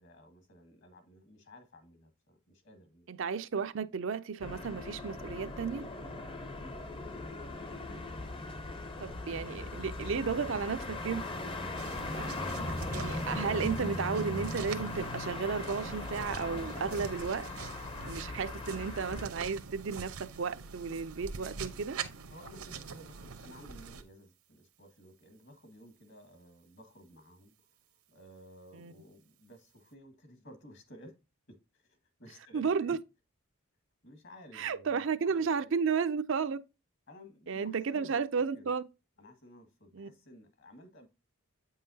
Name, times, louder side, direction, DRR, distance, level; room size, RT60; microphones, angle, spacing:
voice 1, 0.0-3.1 6.0-7.4 22.3-27.7 28.1-31.2 31.5-33.0 34.0-35.7 37.1-38.2 38.5-38.7 39.2-41.1, equal, 55° left, 1.6 m, -55 dB
voice 2, 3.1-5.9 9.0-11.2 12.9-17.5 18.0-22.0 28.7-28.9 32.5-33.0 34.5-36.6 37.5-38.8 39.9-40.1, right 5 dB, 55° right, 0.4 m, -33 dB
sound 1, 4.4-19.3, left 2 dB, 25° left, 0.7 m, -39 dB
sound 2, 11.8-24.0, right 5 dB, 80° right, 0.9 m, -45 dB
8.3 x 5.5 x 2.7 m
head